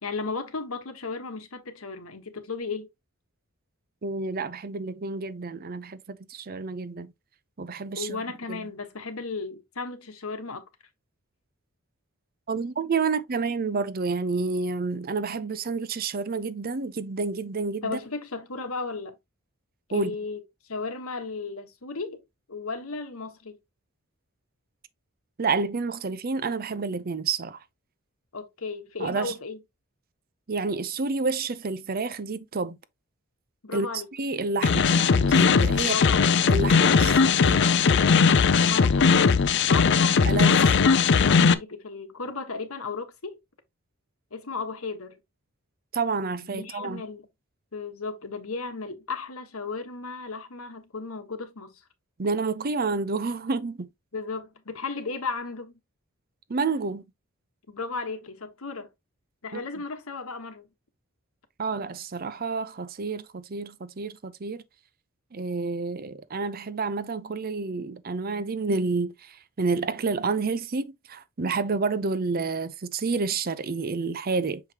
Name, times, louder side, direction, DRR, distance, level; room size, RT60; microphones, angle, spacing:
voice 1, 0.0-2.9 7.9-10.6 17.8-19.1 19.9-20.4 20.7-22.2 22.5-23.6 28.3-29.6 33.6-34.1 35.6-36.3 38.7-39.3 39.7-43.4 44.3-45.2 46.5-47.3 47.7-51.8 54.1-55.7 57.7-58.9 59.4-60.7, left 4 dB, 80° left, 1.3 m, -35 dB
voice 2, 4.0-7.1 7.6-8.2 8.5-8.7 12.5-18.0 19.9-20.2 25.4-27.6 29.0-29.3 30.5-32.8 33.7-33.9 34.2-36.0 36.5-37.6 39.7-40.6 45.9-47.0 52.2-53.9 56.5-57.0 59.5-59.6 61.6-64.6 65.3-74.6, right 4 dB, 45° right, 0.6 m, -29 dB
sound 1, 34.6-41.5, left 5 dB, 55° left, 0.5 m, -19 dB
6.6 x 4.9 x 2.9 m
head